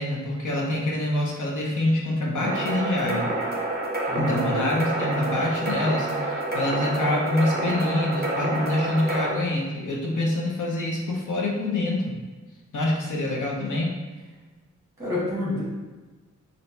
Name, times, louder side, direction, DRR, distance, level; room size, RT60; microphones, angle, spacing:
voice 1, 0.0-3.3 4.1-12.1 12.7-14.0, left 1 dB, 85° left, -2 dB, 0.9 m, -26 dB
sound 1, 2.4-9.3, right 2 dB, 35° right, 0.6 m, -28 dB
voice 2, 4.1-4.7 15.0-15.6, left 1 dB, 10° right, -7 dB, 1.4 m, -29 dB
3.3 x 2.8 x 4.1 m, 1.3 s
wide cardioid pair, 155°, 30 cm